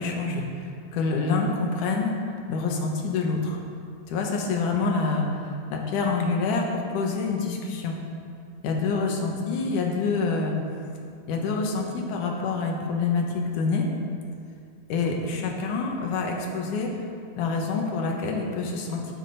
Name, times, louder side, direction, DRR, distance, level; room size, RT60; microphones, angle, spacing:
voice 1, 0.0-2.1 2.5-3.6 4.1-8.0 8.6-10.5 11.3-13.9 14.9-16.9 17.4-19.1, left 4 dB, 65° left, 0 dB, 2.5 m, -27 dB
13.0 x 9.8 x 4.1 m, 2.3 s
omnidirectional pair, 4.3 m